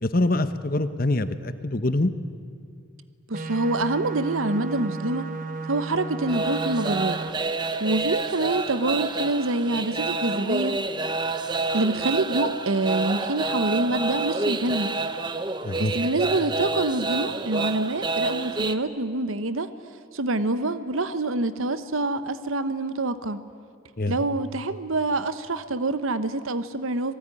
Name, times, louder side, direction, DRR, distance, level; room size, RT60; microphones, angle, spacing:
voice 1, 0.0-2.1 15.6-15.9 24.0-24.2, left 2 dB, 45° left, 12 dB, 1.0 m, -24 dB
sound 1, 3.3-7.3, right 3 dB, 40° right, 1.2 m, -33 dB
voice 2, 3.3-5.3 5.7-7.2 7.8-10.8 11.7-14.9 15.8-19.7 20.1-23.4 24.1-27.1, right 2 dB, 90° right, 12 dB, 1.1 m, -26 dB
sound 2, 6.3-18.7, right 3 dB, 20° right, 0.9 m, -28 dB
26.0 x 19.0 x 10.0 m, 2.3 s
head